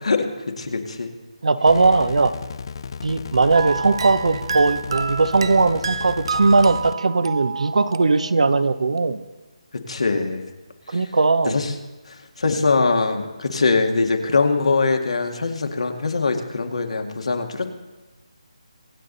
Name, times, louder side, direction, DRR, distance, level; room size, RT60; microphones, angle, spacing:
voice 1, 0.6-1.1 9.7-10.4 10.9-11.1 11.5-11.7 12.1-17.7, left 3 dB, 75° left, 4 dB, 2.0 m, -22 dB
voice 2, 1.4-2.3 3.0-9.2 10.9-11.6, right 3 dB, 75° right, 12 dB, 0.9 m, -19 dB
sound 1, 1.7-6.9, left 6 dB, 45° left, 0.5 m, -34 dB
sound 2, 3.5-8.7, right 5 dB, 50° right, 0.6 m, -30 dB
24.5 x 8.4 x 4.0 m, 1.2 s
figure-of-eight pair, 160°, 3 cm